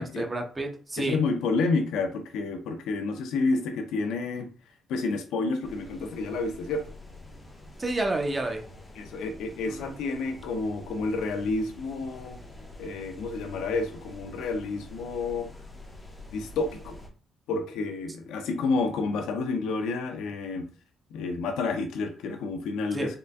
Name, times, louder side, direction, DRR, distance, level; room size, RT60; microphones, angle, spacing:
voice 1, 0.0-1.2 7.8-8.6 9.7-9.9 22.9-23.1, right 2 dB, 25° right, 3 dB, 0.8 m, -30 dB
voice 2, 1.0-4.5 4.9-6.8 9.0-12.4 12.8-15.5 16.3-17.0 17.5-20.7 21.1-23.2, left 3 dB, 85° left, 5 dB, 0.6 m, -29 dB
sound 1, 5.6-17.1, left 1 dB, 20° left, 1.0 m, -47 dB
3.8 x 3.3 x 2.3 m, 0.39 s
cardioid pair, 90°, 0 cm